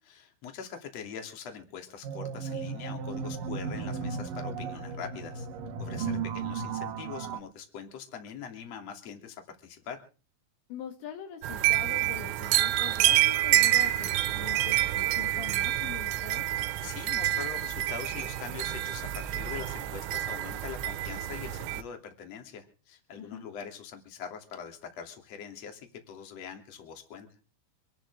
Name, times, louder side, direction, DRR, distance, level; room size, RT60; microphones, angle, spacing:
voice 1, 0.1-5.5 5.8-10.0 16.8-27.3, left 7 dB, 40° left, 5 dB, 3.2 m, -43 dB
sound 1, 2.0-7.4, right 5 dB, 70° right, 2.1 m, -35 dB
voice 2, 10.7-16.5 23.2-23.5, left 8 dB, 70° left, 6 dB, 3.5 m, -43 dB
sound 2, 11.4-21.8, right 14 dB, 85° right, 3.5 m, -28 dB
26.0 x 11.5 x 3.5 m, 0.38 s
omnidirectional pair, 5.7 m